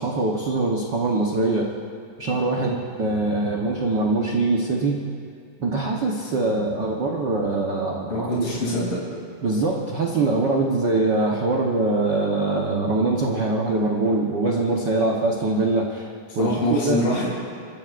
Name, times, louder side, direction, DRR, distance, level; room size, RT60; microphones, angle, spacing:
voice 1, 0.0-1.7 2.2-5.0 5.6-8.3 9.4-16.1 16.3-17.0, right 2 dB, 80° right, -1 dB, 0.9 m, -23 dB
voice 2, 8.1-9.0 16.4-17.3, left 1 dB, 75° left, -6 dB, 5.0 m, -24 dB
29.5 x 14.5 x 2.5 m, 2.3 s
omnidirectional pair, 3.7 m